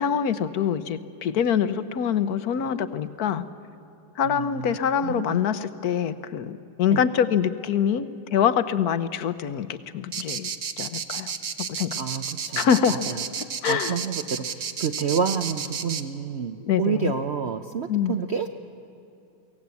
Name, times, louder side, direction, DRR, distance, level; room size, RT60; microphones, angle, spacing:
voice 1, 0.0-3.4 4.2-10.5 10.8-11.3 11.7-12.0 12.6-13.0 13.6-14.0 16.6-17.1 17.9-18.2, left 8 dB, 65° left, 13 dB, 1.2 m, -25 dB
voice 2, 4.2-5.4 6.9-7.0 12.0-13.2 13.7-18.5, right 6 dB, 70° right, 8 dB, 0.6 m, -29 dB
sound 1, 10.1-16.0, right 7 dB, 50° right, 0.9 m, -31 dB
23.5 x 17.5 x 8.3 m, 2.7 s
omnidirectional pair, 2.0 m